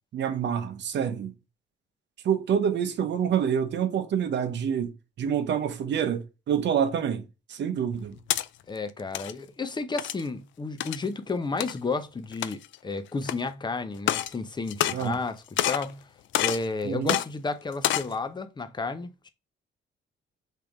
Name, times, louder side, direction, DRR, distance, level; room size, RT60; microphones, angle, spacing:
voice 1, 0.1-1.3 2.2-7.2 7.5-8.2 14.9-15.2 16.8-17.2, right 8 dB, 65° right, 0.8 m, -27 dB
sound 1, 7.9-8.5 9.0-9.3 10.0-10.3 10.8-11.0 11.6-11.7 12.3-12.8 13.3-13.4 14.0-14.3 14.7-15.3 15.6-15.9 16.3-16.7 17.1-17.3 17.7-18.1, left 13 dB, 75° left, 0.4 m, -27 dB
voice 2, 8.7-16.1 16.4-19.3, left 3 dB, 20° left, 0.7 m, -32 dB
3.6 x 2.8 x 4.7 m
cardioid pair, 90°, 20 cm